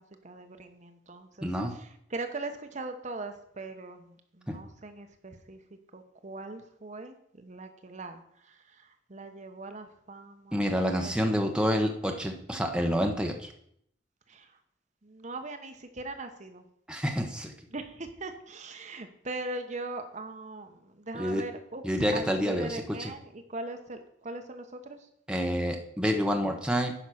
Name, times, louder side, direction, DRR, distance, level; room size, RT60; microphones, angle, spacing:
voice 1, 0.0-5.6 5.9-10.7 11.0-11.6 14.3-14.5 15.0-16.6 17.7-21.8 22.1-25.0, right 2 dB, 40° right, 7 dB, 0.9 m, -40 dB
voice 2, 1.4-1.7 4.5-4.6 10.5-13.5 16.9-17.5 21.1-21.4 21.8-23.1 25.3-26.9, equal, 5° right, 3 dB, 1.0 m, -28 dB
10.0 x 5.5 x 6.3 m, 0.69 s
head